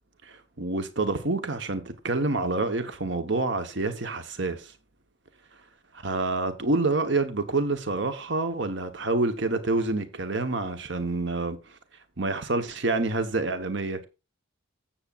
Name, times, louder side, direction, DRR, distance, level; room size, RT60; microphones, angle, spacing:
voice 1, 0.2-4.7 6.0-11.6 12.2-14.1, right 3 dB, 55° right, 1.2 m, -27 dB
15.5 x 7.3 x 2.5 m
head